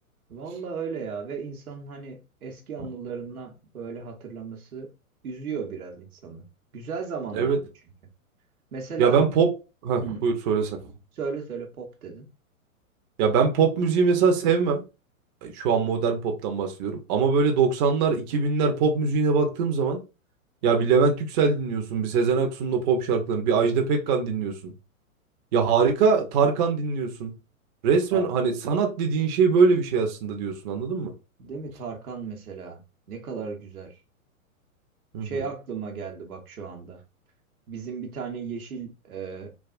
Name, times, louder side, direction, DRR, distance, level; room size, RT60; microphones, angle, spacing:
voice 1, 0.3-4.9 5.2-6.4 6.7-7.6 8.7-9.2 10.0-10.3 11.1-12.3 28.1-28.3 31.4-32.8 33.1-34.0 35.2-37.0 37.7-39.5, right 5 dB, 80° right, 0.9 m, -35 dB
voice 2, 9.0-9.5 9.8-10.9 13.2-14.8 15.4-20.0 20.6-24.7 25.5-27.3 27.8-31.1 35.1-35.4, right 5 dB, 35° right, 0.6 m, -22 dB
3.4 x 2.3 x 2.4 m
hypercardioid pair, 115°, 43 cm